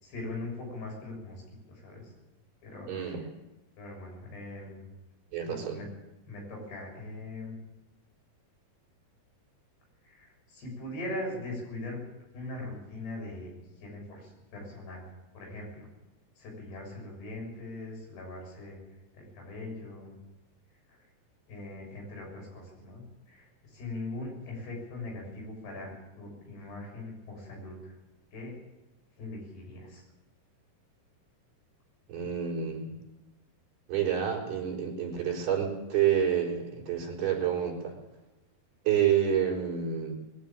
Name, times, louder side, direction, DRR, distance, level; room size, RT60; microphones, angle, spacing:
voice 1, 0.0-2.1 2.6-3.3 3.8-4.8 5.5-5.9 6.3-7.6 10.0-12.0 12.3-13.5 13.8-15.0 15.4-15.9 16.4-18.8 19.1-20.2 20.9-21.0 21.5-27.9 28.3-28.6 29.2-30.0, left 2 dB, 80° left, 1 dB, 8.9 m, -41 dB
voice 2, 2.9-3.3 5.3-5.8 32.1-33.0 33.9-38.0 38.9-40.1, right 9 dB, 75° right, -2 dB, 6.2 m, -28 dB
21.5 x 14.0 x 9.0 m, 1.0 s
omnidirectional pair, 4.6 m